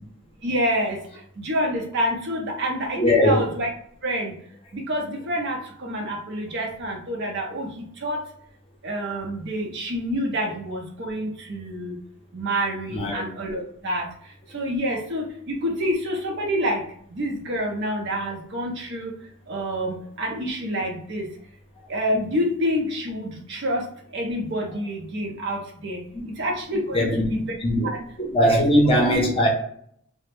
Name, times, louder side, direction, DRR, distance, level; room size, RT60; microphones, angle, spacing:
voice 1, 0.4-1.0 1.4-3.7 4.0-4.3 4.7-8.2 8.8-12.0 12.3-14.1 14.5-16.8 17.1-19.1 19.5-21.3 21.9-23.8 24.1-26.0 26.4-27.4 28.5-28.6, equal, 60° right, 0.6 m, -27 dB
voice 2, 3.0-3.4 12.9-13.2 26.1-26.3 26.9-27.9 28.2-29.5, equal, 25° left, 0.5 m, -20 dB
2.0 x 2.0 x 3.1 m
head